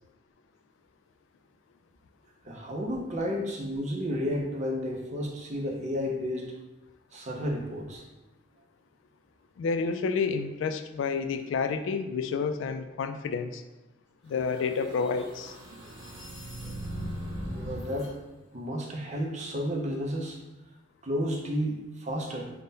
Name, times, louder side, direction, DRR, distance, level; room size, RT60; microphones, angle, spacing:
voice 1, 2.4-6.5 7.1-8.0 17.5-18.2 18.5-20.4 21.0-22.5, equal, 40° right, 0 dB, 0.5 m, -32 dB
voice 2, 9.6-13.6 14.2-15.6, left 5 dB, 85° left, 9 dB, 0.3 m, -29 dB
sound 1, 14.3-18.1, equal, ahead, 1.1 m, -39 dB
3.6 x 2.2 x 3.9 m, 1.0 s
head